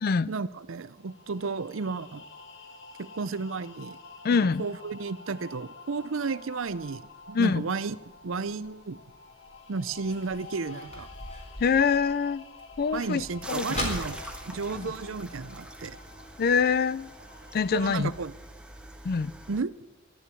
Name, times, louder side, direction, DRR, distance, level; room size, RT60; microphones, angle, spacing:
voice 1, 0.3-2.2 3.0-4.0 4.3-8.0 8.2-9.0 9.7-11.1 12.9-16.0 17.7-18.3 19.5-19.7, right 4 dB, 75° right, 16 dB, 0.6 m, -33 dB
sound 1, 0.7-18.0, left 3 dB, 65° left, 1.5 m, -49 dB
voice 2, 4.2-4.6 7.3-7.6 11.6-12.4 12.8-13.9 16.4-17.1 17.5-18.1 19.0-19.3, left 5 dB, 50° left, 19 dB, 0.4 m, -25 dB
sound 2, 6.6-15.9 16.2-16.3 16.6-16.9 17.4-17.5 18.0-18.1 18.4-18.5 18.9-19.0, left 1 dB, 35° left, 4.0 m, -41 dB
sound 3, 13.4-19.6, right 1 dB, 5° right, 1.1 m, -44 dB
14.0 x 12.0 x 8.3 m, 1.1 s
head